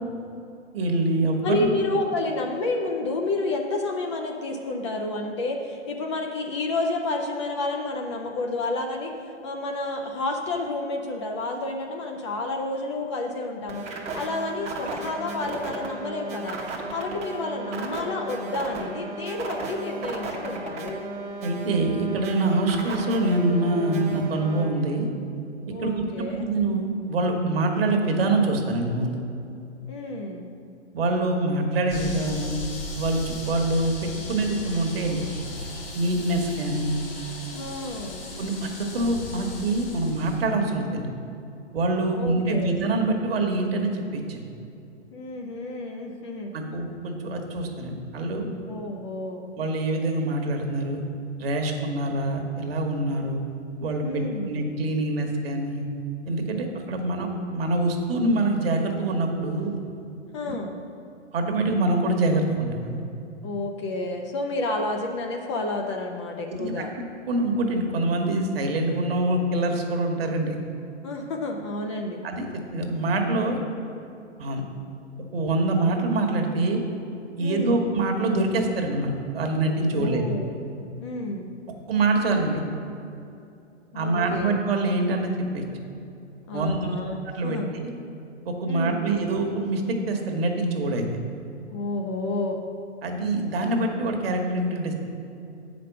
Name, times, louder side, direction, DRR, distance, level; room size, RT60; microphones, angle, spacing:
voice 1, 0.7-1.7 21.4-25.1 25.8-29.2 30.9-32.6 32.9-35.2 35.9-36.9 38.4-41.1 41.7-44.4 46.5-48.5 49.6-51.0 51.4-53.4 53.8-55.8 56.2-59.8 61.3-63.0 66.5-66.8 67.3-70.6 72.2-73.6 74.4-74.6 75.3-76.8 77.4-80.2 81.9-82.6 83.9-85.6 86.5-87.0 87.3-87.9 88.4-91.0 93.0-94.9, right 2 dB, 55° right, 3 dB, 1.3 m, -25 dB
voice 2, 1.4-9.1 9.4-13.8 14.1-16.6 16.9-21.0 25.7-26.5 29.9-30.5 37.5-38.2 42.1-42.7 45.1-46.5 48.7-49.4 54.0-54.5 60.3-60.7 63.4-66.9 71.0-72.2 77.4-77.8 79.9-80.5 81.0-81.5 83.9-84.6 86.5-87.7 88.7-89.0 91.7-92.6, left 2 dB, 25° left, 2 dB, 0.5 m, -30 dB
sound 1, 13.7-24.6, right 3 dB, 20° right, 0.9 m, -35 dB
sound 2, 31.9-40.4, left 3 dB, 50° left, 1.7 m, -37 dB
8.2 x 5.2 x 5.9 m, 2.6 s
hypercardioid pair, 130°, 36 cm